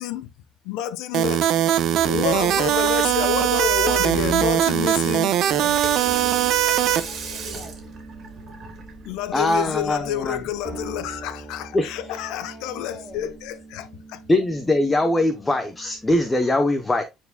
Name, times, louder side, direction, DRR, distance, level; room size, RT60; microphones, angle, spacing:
voice 1, 0.7-1.5 2.0-5.3 9.0-14.2, left 11 dB, 85° left, 0.7 m, -29 dB
sound 1, 1.1-7.0, right 11 dB, 55° right, 0.8 m, -20 dB
sound 2, 1.4-16.2, right 2 dB, 25° right, 1.3 m, -41 dB
voice 2, 5.1-8.0 11.8-13.4, right 2 dB, 5° right, 3.8 m, -46 dB
Water tap faucet / Sink (filling or washing), 5.4-10.9, right 4 dB, 40° right, 3.0 m, -37 dB
voice 3, 9.3-10.4 11.7-11.9 14.3-17.0, left 1 dB, 10° left, 0.8 m, -21 dB
9.4 x 4.6 x 2.2 m
cardioid pair, 160°, 0 cm